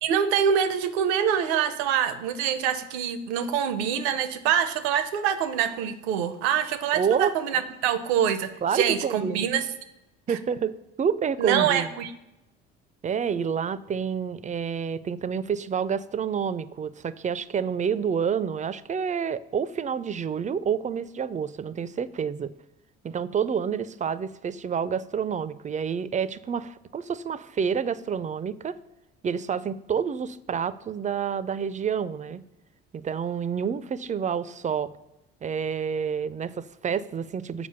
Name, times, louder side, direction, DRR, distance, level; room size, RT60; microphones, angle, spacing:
voice 1, 0.0-9.7 10.3-10.4 11.4-12.1, right 8 dB, 75° right, 12 dB, 0.8 m, -25 dB
voice 2, 6.9-7.3 8.6-9.5 10.3-11.9 13.0-22.5 23.0-28.8 29.2-32.4 32.9-34.9 35.4-37.7, right 7 dB, 25° right, 16 dB, 0.5 m, -28 dB
7.0 x 4.9 x 6.6 m, 0.96 s
hypercardioid pair, 55°, 32 cm